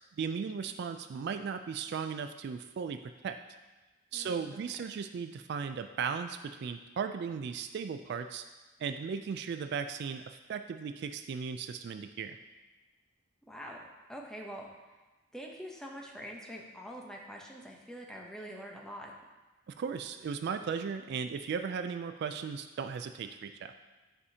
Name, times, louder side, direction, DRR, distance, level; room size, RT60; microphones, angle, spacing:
voice 1, 0.2-3.4 4.1-8.4 8.8-12.4 19.7-23.7, right 6 dB, 60° right, 8 dB, 0.3 m, -36 dB
voice 2, 4.1-4.9 13.5-13.8 14.1-14.7 15.3-19.1, equal, 5° left, -1 dB, 0.8 m, -45 dB
9.8 x 4.9 x 2.8 m, 1.2 s
head